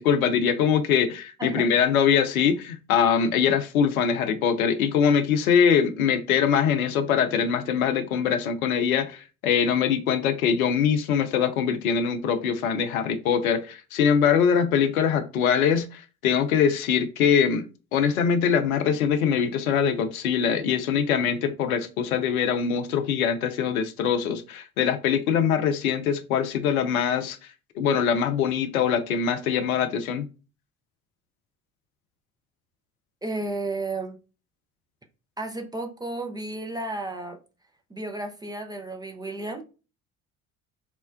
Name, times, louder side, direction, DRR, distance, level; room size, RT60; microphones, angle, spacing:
voice 1, 0.0-17.7 17.9-27.4 27.8-30.3, left 7 dB, 80° left, 0.5 m, -23 dB
voice 2, 33.2-34.2 35.4-37.4 37.9-39.6, right 2 dB, 10° right, 0.5 m, -33 dB
4.4 x 2.1 x 2.2 m
figure-of-eight pair, 50°, 42 cm